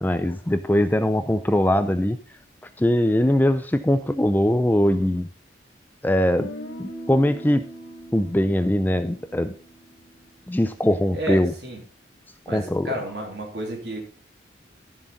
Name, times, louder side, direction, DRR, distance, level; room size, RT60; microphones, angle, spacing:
voice 1, 0.0-2.2 2.8-5.3 6.0-6.5 6.8-7.6 8.1-9.5 10.5-11.5 12.5-12.9, left 1 dB, 10° left, 10 dB, 0.4 m, -21 dB
Guitar, 6.4-10.3, equal, 85° left, 2.0 m, -40 dB
voice 2, 11.1-11.8 12.5-14.0, right 1 dB, 60° right, 0 dB, 3.2 m, -31 dB
12.5 x 7.3 x 4.0 m, 0.40 s
head